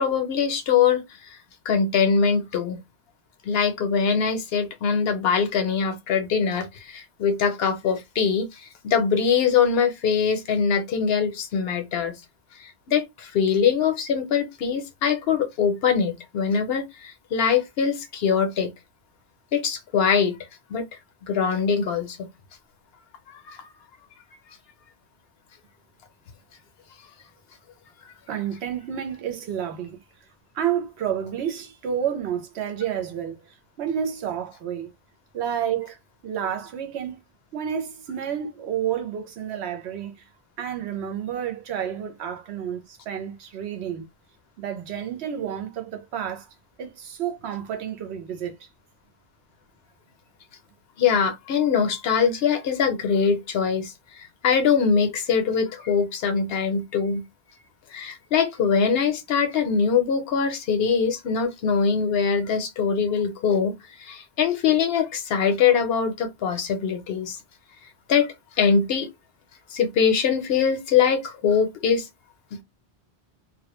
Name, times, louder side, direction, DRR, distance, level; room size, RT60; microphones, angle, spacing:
voice 1, 0.0-1.4 1.7-2.8 3.4-12.2 12.6-18.7 19.5-20.4 20.7-20.8 21.3-22.3 23.3-23.6 51.0-57.2 57.9-67.4 68.1-69.1 69.7-72.1 72.5-72.6, left 6 dB, 70° left, 0.8 m, -23 dB
voice 2, 28.3-30.0 30.5-33.4 33.8-34.9 35.3-36.0 36.2-37.2 37.5-40.1 40.6-44.1 44.6-46.5 46.8-48.7, right 9 dB, 85° right, 0.9 m, -30 dB
2.2 x 2.1 x 2.9 m
omnidirectional pair, 1.1 m